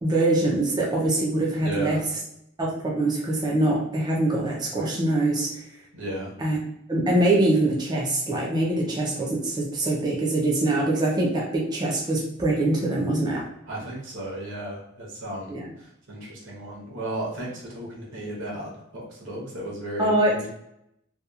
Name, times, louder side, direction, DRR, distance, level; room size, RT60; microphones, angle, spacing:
voice 1, 0.0-2.0 2.6-5.5 6.4-6.6 6.9-13.4 15.5-15.7 20.0-20.5, right 2 dB, 20° right, -3 dB, 0.4 m, -23 dB
voice 2, 1.6-2.0 5.9-6.3 13.7-15.6 16.1-20.5, right 1 dB, 65° right, -3 dB, 0.9 m, -34 dB
2.8 x 2.2 x 2.3 m, 0.79 s
head